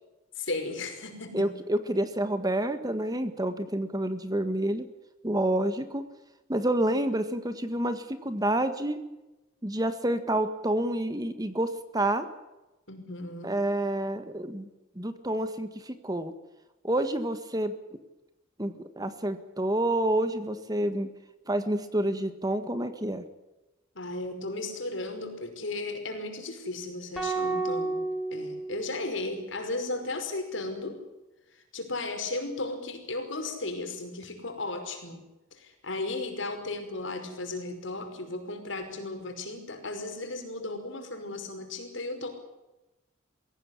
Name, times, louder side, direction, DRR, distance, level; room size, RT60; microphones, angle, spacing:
voice 1, 0.4-1.6 12.9-13.5 24.0-28.0 28.3-31.0 31.5-35.2 35.5-42.3, left 2 dB, 70° left, 5 dB, 5.4 m, -35 dB
voice 2, 1.3-4.8 5.2-6.0 6.5-9.0 9.6-12.3 13.4-14.7 14.9-16.3 16.8-17.7 18.6-21.1 21.5-23.2, right 1 dB, 20° right, 10 dB, 1.6 m, -28 dB
sound 1, 27.2-29.5, right 3 dB, ahead, 6.2 m, -32 dB
23.0 x 16.5 x 10.0 m, 1.0 s
head